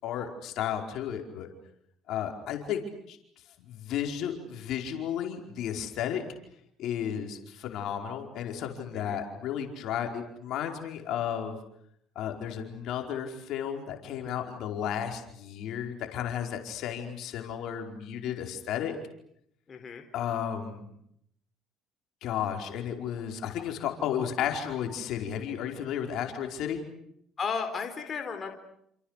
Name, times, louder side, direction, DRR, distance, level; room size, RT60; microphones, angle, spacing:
voice 1, 0.0-1.5 2.1-2.8 3.1-3.2 3.6-6.2 6.8-11.6 12.1-19.0 20.1-20.9 22.2-26.8, left 9 dB, 70° left, 3 dB, 4.9 m, -33 dB
voice 2, 19.7-20.0 27.4-28.6, left 5 dB, 40° left, 6 dB, 4.0 m, -34 dB
29.0 x 28.0 x 6.7 m, 0.73 s
supercardioid pair, 80°, 0 cm